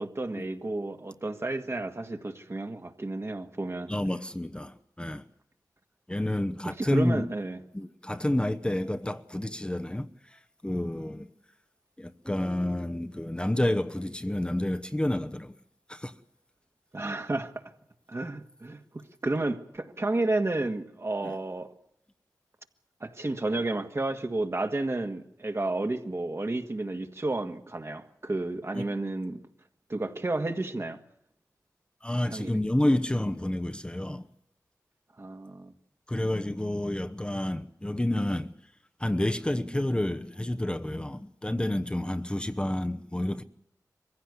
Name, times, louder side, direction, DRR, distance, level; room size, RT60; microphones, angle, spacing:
voice 1, 0.0-3.9 6.7-7.6 16.9-17.7 18.1-21.7 23.0-29.4 29.9-31.0 32.3-32.5 35.2-35.7, right 2 dB, 40° right, 1.8 m, -31 dB
voice 2, 3.9-5.2 6.1-7.3 7.7-11.3 12.0-15.5 15.9-16.1 21.2-21.3 28.7-28.9 32.0-34.2 36.1-38.5 39.0-43.4, left 1 dB, 15° left, 1.0 m, -29 dB
22.5 x 16.0 x 9.7 m
cardioid pair, 50°, 7 cm